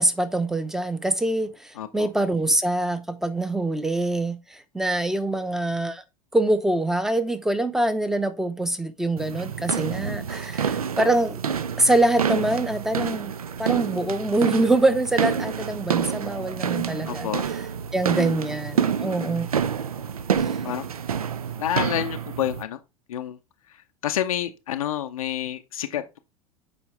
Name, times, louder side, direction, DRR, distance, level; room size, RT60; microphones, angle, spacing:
voice 1, 0.0-6.0 6.3-11.4 11.8-13.3 13.6-17.3 17.9-19.5, right 2 dB, ahead, 0.7 m, -24 dB
voice 2, 1.8-2.1 9.8-10.3 17.1-17.5 20.6-20.9 21.6-22.8 23.1-23.4 23.7-26.2, left 11 dB, 75° left, 0.5 m, -29 dB
sound 1, 9.2-22.6, right 7 dB, 85° right, 0.4 m, -28 dB
7.0 x 4.6 x 3.2 m
figure-of-eight pair, 80°, 18 cm